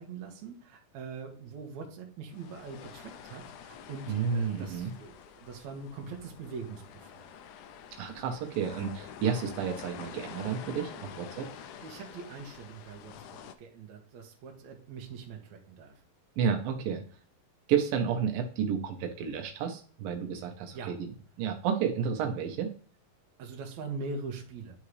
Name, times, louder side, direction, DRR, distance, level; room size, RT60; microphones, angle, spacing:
voice 1, 0.0-7.3 11.5-16.0 20.7-21.0 23.4-24.8, right 4 dB, 65° right, 1 dB, 2.3 m, -43 dB
sound 1, 2.3-13.6, left 8 dB, 80° left, 1.9 m, -47 dB
voice 2, 4.1-4.9 8.0-11.5 16.4-17.0 17.7-21.1 21.4-22.7, right 7 dB, 85° right, 4 dB, 2.6 m, -31 dB
11.0 x 3.7 x 3.2 m, 0.44 s
omnidirectional pair, 4.0 m